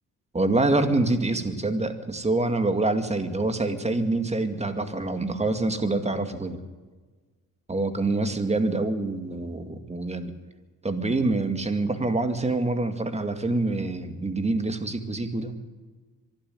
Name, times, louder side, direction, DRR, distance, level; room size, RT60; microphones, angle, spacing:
voice 1, 0.3-6.6 7.7-10.3 10.8-15.5, right 2 dB, 20° right, 8 dB, 2.2 m, -26 dB
24.5 x 12.0 x 9.6 m, 1.3 s
cardioid pair, 115°, 34 cm